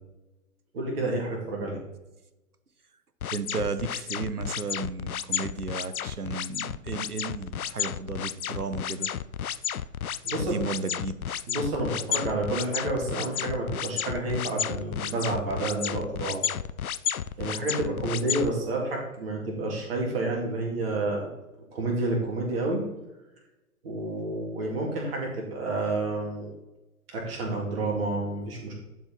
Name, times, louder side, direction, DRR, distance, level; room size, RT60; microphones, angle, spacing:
voice 1, 0.7-1.8 10.2-10.6 11.5-16.4 17.4-21.3 21.7-22.8 23.8-26.5 27.1-28.7, right 2 dB, 40° right, -1 dB, 2.8 m, -29 dB
sound 1, 3.2-18.5, left 9 dB, 70° left, 0.5 m, -32 dB
voice 2, 3.3-9.1 10.4-11.4, right 4 dB, 85° right, 12 dB, 0.9 m, -34 dB
11.0 x 4.7 x 4.0 m, 0.99 s
figure-of-eight pair, 120°, 44 cm